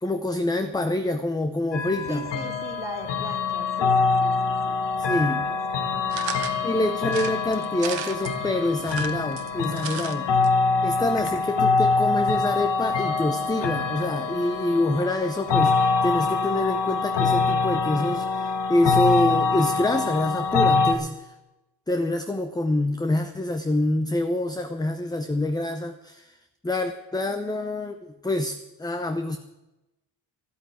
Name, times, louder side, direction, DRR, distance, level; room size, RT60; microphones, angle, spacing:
voice 1, 0.0-2.2 5.0-5.4 6.6-10.3 10.8-21.3 21.9-26.4 26.6-29.4, left 1 dB, 10° left, 9 dB, 0.6 m, -26 dB
sound 1, 1.7-20.9, left 4 dB, 65° left, 1.7 m, -24 dB
voice 2, 2.0-4.8 5.0-5.6 5.9-6.4, right 1 dB, 5° right, 1 dB, 2.7 m, -40 dB
sound 2, 6.1-6.6 7.1-8.3 8.8-10.1 10.4-10.5 10.7-10.8, right 11 dB, 80° right, 1.2 m, -35 dB
12.5 x 8.8 x 9.2 m, 1.0 s
cardioid pair, 105°, 45 cm